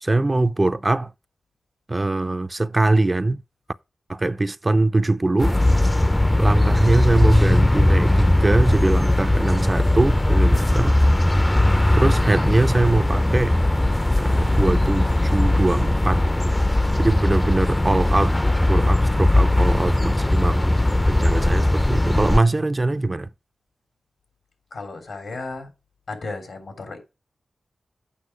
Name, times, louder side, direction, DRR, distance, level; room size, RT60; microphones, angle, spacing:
voice 1, 0.0-1.1 1.9-3.4 4.1-5.6 6.4-11.0 11.9-13.6 14.2-16.3 17.0-18.4 18.7-20.7 21.1-23.3, right 2 dB, 35° right, 0.5 m, -22 dB
sound 1, 5.4-22.4, left 1 dB, 20° left, 0.6 m, -19 dB
voice 2, 24.7-25.7 26.1-27.0, left 3 dB, 75° left, 3.4 m, -34 dB
8.5 x 6.0 x 4.9 m
cardioid pair, 40°, 0 cm